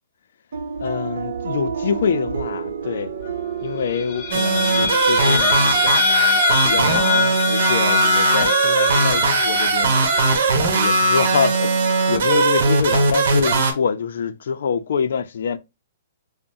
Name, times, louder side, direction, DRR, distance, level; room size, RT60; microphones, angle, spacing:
sound 1, 0.5-5.9, right 6 dB, 70° right, 0.7 m, -30 dB
voice 1, 0.8-3.1 3.6-10.0 10.6-15.6, left 6 dB, 70° left, 0.5 m, -25 dB
sound 2, 3.9-10.4, left 7 dB, 35° left, 0.8 m, -23 dB
sound 3, 4.3-13.7, right 3 dB, 55° right, 1.1 m, -19 dB
5.3 x 2.1 x 2.6 m
hypercardioid pair, 165°, 0 cm